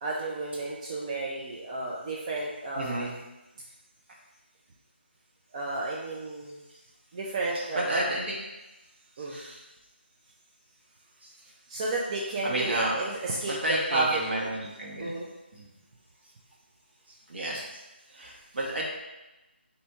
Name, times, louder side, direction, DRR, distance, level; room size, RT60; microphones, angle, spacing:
voice 1, 0.0-3.1 5.5-6.6 7.1-8.1 9.2-9.4 11.7-14.5 15.0-15.3, right 2 dB, 30° right, -5 dB, 0.5 m, -32 dB
voice 2, 2.7-3.1 7.7-8.4 9.3-9.6 12.4-12.9 13.4-15.1 15.5-15.7 17.3-17.6 18.1-18.8, right 1 dB, 65° right, -3 dB, 1.2 m, -31 dB
3.3 x 2.7 x 4.3 m, 1.0 s
figure-of-eight pair, 160°, 6 cm